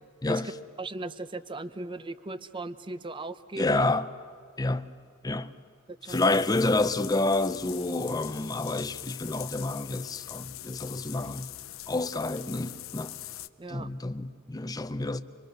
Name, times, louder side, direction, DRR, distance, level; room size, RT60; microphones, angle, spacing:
voice 1, 0.8-3.8 5.9-6.3 13.6-13.9, right 2 dB, 25° right, 0.6 m, -37 dB
voice 2, 3.6-4.1 4.6-4.9 5.2-5.5 6.1-11.5 11.9-13.1 13.7-15.2, left 2 dB, 20° left, 0.6 m, -28 dB
sound 1, 6.1-13.5, left 14 dB, 75° left, 0.6 m, -42 dB
25.5 x 23.5 x 6.6 m
head